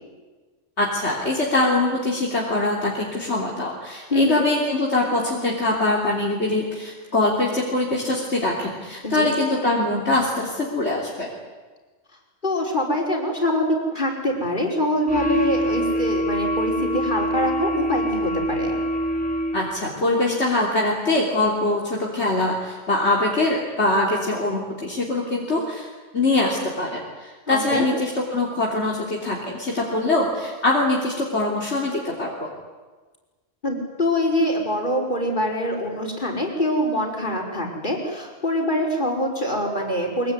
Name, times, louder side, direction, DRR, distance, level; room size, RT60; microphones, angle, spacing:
voice 1, 0.8-11.3 19.5-25.9 26.1-32.5, left 2 dB, 60° left, -3 dB, 3.6 m, -23 dB
voice 2, 4.1-4.4 9.0-9.3 12.4-13.7 13.9-18.8 27.5-27.9 33.6-40.3, left 1 dB, 40° left, 0 dB, 5.6 m, -24 dB
sound 1, 15.1-19.9, equal, 5° left, 3.1 m, -25 dB
24.0 x 23.0 x 9.7 m, 1.3 s
omnidirectional pair, 1.3 m